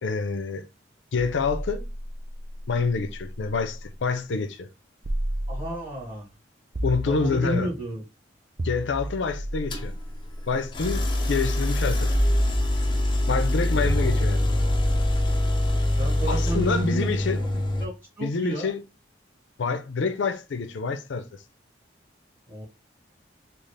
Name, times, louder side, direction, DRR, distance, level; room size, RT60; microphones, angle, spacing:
voice 1, 0.0-0.6 1.1-1.8 2.7-4.7 6.8-7.7 8.6-9.9 10.5-11.0 11.3-12.1 13.3-14.5 16.3-17.4 18.2-18.8 19.6-21.4, left 4 dB, 85° left, 0.5 m, -27 dB
sound 1, 1.2-3.9 5.0-6.1 6.7-7.9 8.6-10.8 12.1-13.2 13.9-16.0, right 1 dB, 35° right, 0.4 m, -33 dB
voice 2, 5.5-6.3 7.0-8.0 13.9-14.7 16.0-17.5 17.8-18.7 22.5-22.6, right 1 dB, 10° right, 2.0 m, -32 dB
sound 2, 9.7-9.9 10.7-17.9, left 1 dB, 25° left, 0.6 m, -24 dB
3.8 x 2.4 x 3.2 m
head